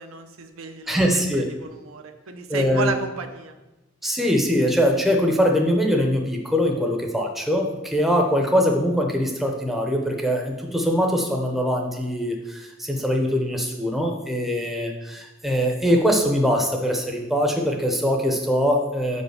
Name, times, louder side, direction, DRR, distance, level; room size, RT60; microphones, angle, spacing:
voice 1, 0.0-3.6, right 4 dB, 80° right, 6 dB, 0.7 m, -33 dB
voice 2, 0.9-1.5 2.5-2.9 4.0-19.2, equal, ahead, 1 dB, 0.7 m, -22 dB
5.3 x 4.8 x 6.4 m, 1.0 s
head